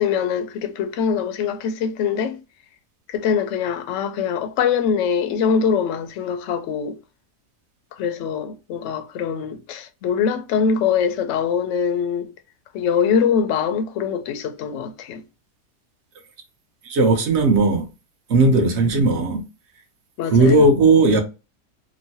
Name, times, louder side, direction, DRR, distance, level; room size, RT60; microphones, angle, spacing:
voice 1, 0.0-2.4 3.1-7.0 7.9-12.3 12.7-15.2 20.2-20.6, left 7 dB, 70° left, 0.7 m, -23 dB
voice 2, 16.9-17.9 18.3-19.4 20.3-21.2, right 2 dB, 60° right, 0.8 m, -16 dB
3.0 x 2.1 x 2.7 m
omnidirectional pair, 1.6 m